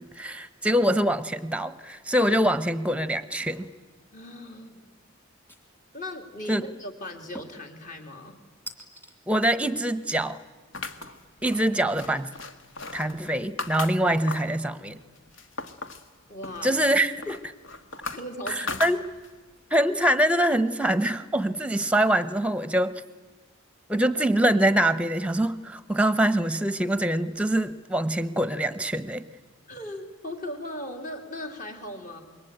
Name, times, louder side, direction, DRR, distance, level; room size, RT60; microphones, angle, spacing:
voice 1, 0.0-3.7 6.5-6.6 9.3-10.4 11.4-12.3 12.9-15.0 16.6-17.5 18.5-19.0 19.7-22.9 23.9-29.3, right 1 dB, 5° right, 14 dB, 1.0 m, -24 dB
sound 1, 2.5-2.8 3.3-3.8 5.5-6.0 7.3-7.7 8.7-9.1, right 1 dB, 10° left, 2.2 m, -44 dB
voice 2, 4.1-4.8 5.9-8.4 16.3-16.8 18.0-18.8 29.7-32.2, left 1 dB, 40° left, 4 dB, 3.2 m, -38 dB
sound 2, 10.7-14.6 15.0-16.1 16.4-19.5, left 3 dB, 65° left, 1.6 m, -37 dB
27.0 x 22.5 x 8.9 m, 1.3 s
head